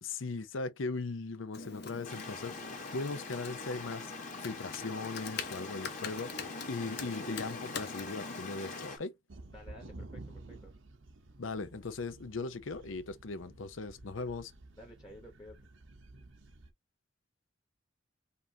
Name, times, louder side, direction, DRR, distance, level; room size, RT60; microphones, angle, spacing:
voice 1, 0.0-4.1 4.4-9.1 11.4-14.5, left 3 dB, 80° left, 0.7 m, -39 dB
Computer keyboard, 1.5-8.9, left 4 dB, 55° left, 0.9 m, -44 dB
sound 1, 2.0-9.0, left 3 dB, 40° left, 1.6 m, -44 dB
sound 2, 9.3-16.7, right 2 dB, 80° right, 1.0 m, -52 dB
voice 2, 9.5-10.7 14.8-15.6, left 1 dB, 20° left, 1.2 m, -52 dB
5.4 x 2.7 x 2.8 m
head